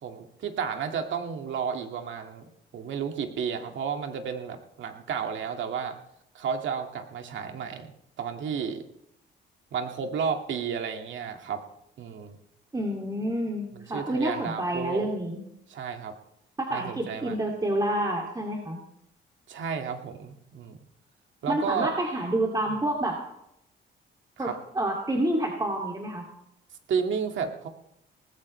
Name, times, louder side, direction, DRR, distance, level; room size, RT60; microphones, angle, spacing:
voice 1, 0.0-2.4 2.7-6.0 6.3-7.9 8.2-8.8 9.7-11.6 12.0-12.4 13.7-15.1 15.7-16.1 16.7-17.4 19.5-20.8 21.4-21.9 24.4-24.5 26.9-27.7, right 6 dB, 70° right, 5 dB, 2.1 m, -32 dB
voice 2, 12.7-15.4 16.6-18.8 21.5-23.2 24.4-24.5 24.7-26.3, right 1 dB, 20° right, 0 dB, 2.5 m, -28 dB
19.0 x 15.5 x 3.3 m, 0.79 s
cardioid pair, 90°, 20 cm